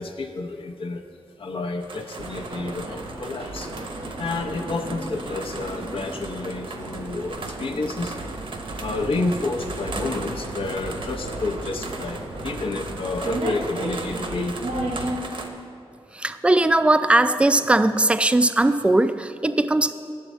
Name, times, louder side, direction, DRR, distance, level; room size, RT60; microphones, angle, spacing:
voice 1, 0.0-3.7 4.2-8.2 8.8-14.6, left 3 dB, 65° left, 4 dB, 0.7 m, -30 dB
sound 1, 1.8-15.5, right 3 dB, 60° right, 0.8 m, -38 dB
sound 2, 2.2-15.2, right 1 dB, 90° right, 1.2 m, -33 dB
voice 2, 16.1-19.9, right 2 dB, 10° right, 11 dB, 0.3 m, -19 dB
10.5 x 7.1 x 4.3 m, 2.4 s
wide cardioid pair, 90°, 10 cm